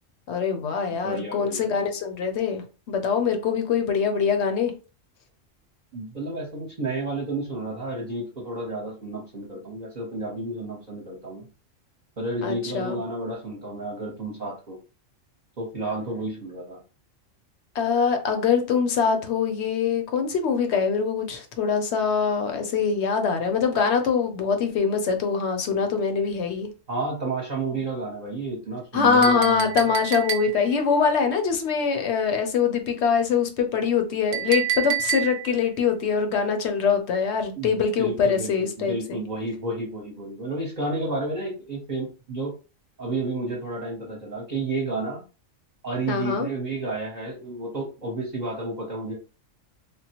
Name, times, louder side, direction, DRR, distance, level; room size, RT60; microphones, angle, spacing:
voice 1, 0.3-4.7 12.4-13.0 17.7-26.7 27.7-27.8 28.9-39.2 46.1-46.5, left 6 dB, 65° left, 0.9 m, -23 dB
voice 2, 0.9-1.6 5.9-11.5 12.2-14.8 15.6-16.8 26.9-29.8 37.6-42.5 43.0-45.2 45.8-49.1, right 2 dB, 40° right, 0.9 m, -31 dB
Chink clink, 29.2-30.8 34.3-35.6, right 10 dB, 65° right, 0.8 m, -29 dB
3.5 x 2.1 x 2.8 m
omnidirectional pair, 1.3 m